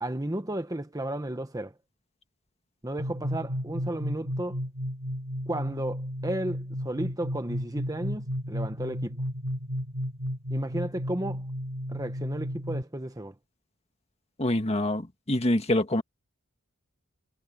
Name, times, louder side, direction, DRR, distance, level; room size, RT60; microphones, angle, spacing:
voice 1, 0.0-1.7 2.8-4.6 5.5-9.2 10.5-11.5 11.9-13.3, right 1 dB, 15° right, 1.1 m, -33 dB
sound 1, 3.0-12.8, equal, 85° right, 6.1 m, -33 dB
voice 2, 14.4-16.0, left 1 dB, 30° left, 1.8 m, -25 dB
head